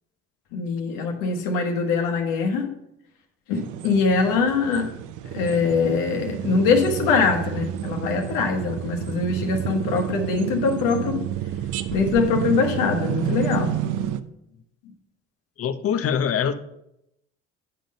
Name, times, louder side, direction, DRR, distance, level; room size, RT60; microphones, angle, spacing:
voice 1, 0.5-2.7 3.5-4.9 5.3-11.2 11.9-13.8, left 4 dB, 80° left, 1.2 m, -23 dB
sound 1, 3.5-14.2, right 11 dB, 65° right, 0.6 m, -30 dB
voice 2, 15.6-16.5, left 8 dB, 45° left, 0.7 m, -23 dB
9.0 x 3.9 x 5.2 m
supercardioid pair, 65°, 33 cm